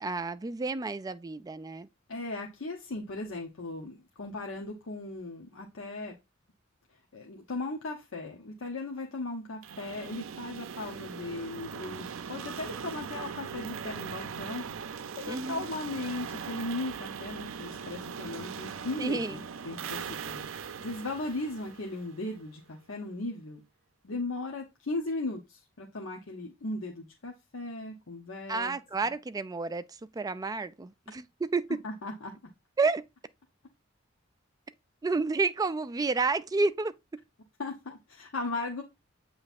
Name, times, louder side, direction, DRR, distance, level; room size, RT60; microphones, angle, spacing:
voice 1, 0.0-1.9 15.3-15.7 19.0-19.4 28.5-31.7 32.8-33.0 35.0-36.9, right 3 dB, 20° right, 0.3 m, -30 dB
voice 2, 2.1-6.2 7.1-20.5 20.8-23.6 24.0-28.7 29.0-29.1 31.8-32.3 37.6-38.8, left 2 dB, 75° left, 0.9 m, -37 dB
sound 1, 9.6-22.5, right 6 dB, 75° right, 0.5 m, -40 dB
8.0 x 3.2 x 4.1 m
head